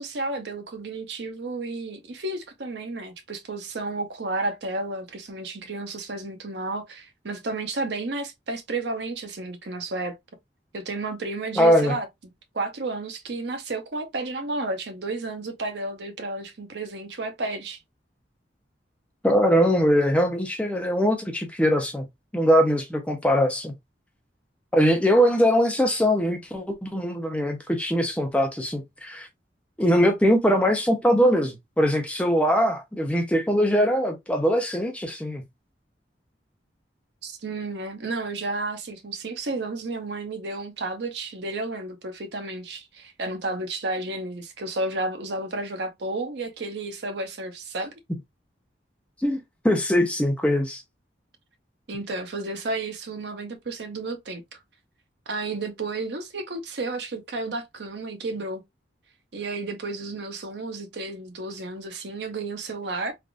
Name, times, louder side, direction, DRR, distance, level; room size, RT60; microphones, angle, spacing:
voice 1, 0.0-10.1 10.7-12.1 12.5-17.8 37.2-47.9 51.9-54.6 55.3-58.6 59.3-63.1, right 2 dB, 70° right, 0.8 m, -32 dB
voice 2, 11.6-11.9 19.2-22.0 22.3-23.7 24.7-29.3 29.8-35.4 49.2-50.8, equal, 5° left, 0.6 m, -22 dB
3.4 x 2.4 x 2.4 m
head